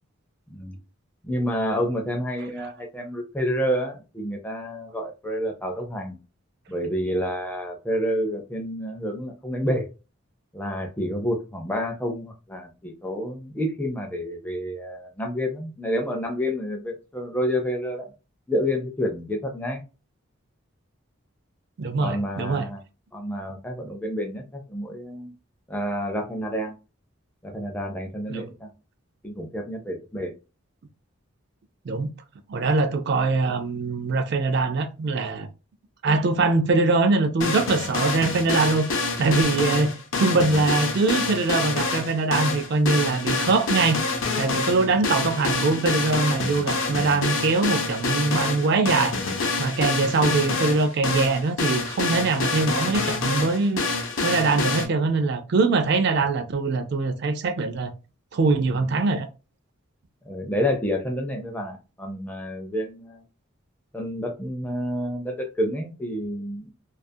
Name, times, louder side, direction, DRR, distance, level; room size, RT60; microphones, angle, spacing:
voice 1, 1.2-6.2 6.7-9.9 10.5-18.1 18.5-19.8 22.0-22.8 23.1-25.3 25.7-26.7 27.4-28.7 29.2-30.3 39.6-39.7 44.7-45.0 58.7-58.9 60.3-63.2 63.9-66.6, equal, 10° left, 0.4 m, -29 dB
voice 2, 21.8-22.7 28.3-28.5 31.9-32.1 32.5-35.5 36.0-39.9 40.2-44.0 44.4-49.2 49.6-57.9 58.3-59.3, right 3 dB, 55° right, 0.4 m, -23 dB
sound 1, 37.4-54.9, left 3 dB, 65° left, 0.6 m, -27 dB
2.4 x 2.4 x 2.6 m
head